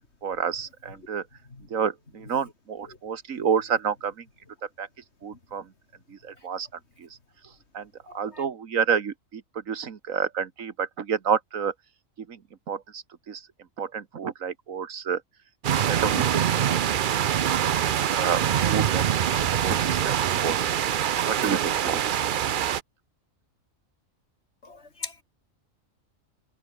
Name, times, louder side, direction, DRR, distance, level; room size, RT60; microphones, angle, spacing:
voice 1, 0.2-1.2 1.7-4.1 4.8-4.9 5.2-5.6 6.2-6.7 7.0-7.1 7.7-7.9 8.1-9.4 9.7-11.7 12.3-12.4 12.7-13.4 13.8-15.2 15.7-16.4 16.7-16.8 17.1-17.3 17.6-17.7 18.1-19.0 19.4-20.7 21.3-22.0, right 7 dB, 90° right, 1.8 m, -29 dB
voice 2, 8.1-8.4 24.6-25.2, left 3 dB, 55° left, 3.2 m, -40 dB
sound 1, 15.6-22.8, right 9 dB, 55° right, 0.6 m, -24 dB
omnidirectional pair, 1.4 m